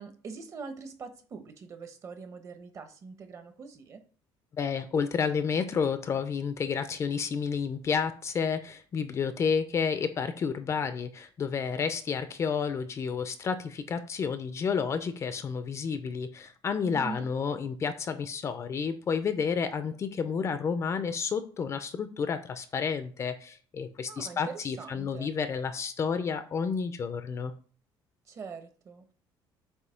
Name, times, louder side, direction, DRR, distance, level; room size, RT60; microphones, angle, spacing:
voice 1, 0.0-4.0 16.9-17.3 24.1-25.3 28.3-29.1, right 5 dB, 35° right, 7 dB, 1.0 m, -43 dB
voice 2, 4.5-27.5, left 6 dB, 35° left, 10 dB, 0.6 m, -30 dB
8.1 x 2.8 x 5.7 m, 0.41 s
cardioid pair, 160°, 9 cm